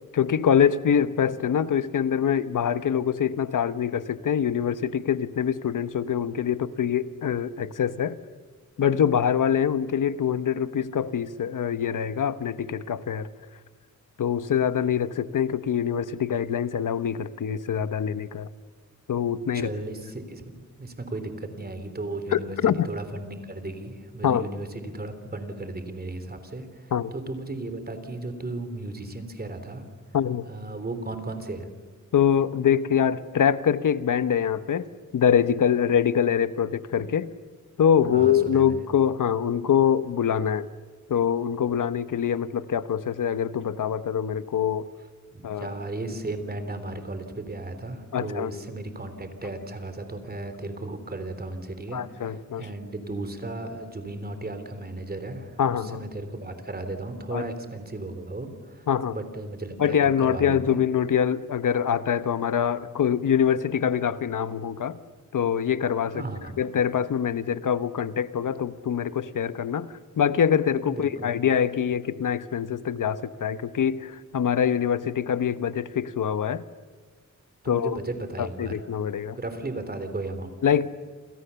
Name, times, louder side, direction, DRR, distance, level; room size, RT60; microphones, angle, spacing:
voice 1, 0.1-8.2 8.8-13.3 14.2-18.5 19.1-19.7 22.3-22.9 24.2-24.4 26.9-27.1 30.1-30.5 32.1-37.3 37.8-40.7 41.1-44.9 45.4-45.7 48.1-48.5 51.9-52.7 55.6-56.0 57.3-57.4 58.9-59.2 59.8-65.0 65.3-66.2 66.6-76.6 77.6-78.0 78.4-79.4 80.6-80.9, left 8 dB, 85° left, 13 dB, 1.1 m, -24 dB
voice 2, 19.5-22.6 22.8-29.8 30.5-31.7 38.1-38.8 45.3-58.8 59.1-60.8 66.1-66.5 70.9-71.3 77.6-78.7 79.3-80.6, right 2 dB, 30° right, 9 dB, 3.4 m, -35 dB
28.5 x 28.0 x 7.0 m, 1.5 s
wide cardioid pair, 160°, 31 cm